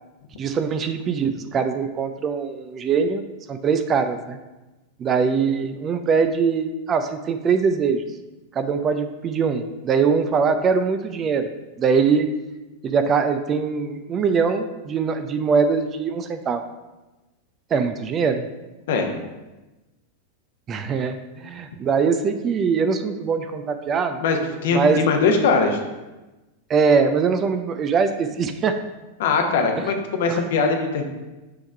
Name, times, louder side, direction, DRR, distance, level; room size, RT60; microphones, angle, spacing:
voice 1, 0.4-3.2 3.5-4.4 5.0-8.1 8.5-11.5 11.8-12.3 12.8-16.6 17.7-18.5 20.7-24.2 24.7-25.0 26.7-28.8 29.8-29.9 30.3-30.4, right 5 dB, 25° right, 8 dB, 0.5 m, -22 dB
voice 2, 24.2-25.8 29.2-31.1, left 4 dB, 55° left, 4 dB, 1.0 m, -21 dB
6.8 x 3.6 x 5.4 m, 1.1 s
figure-of-eight pair, 90°, 0 cm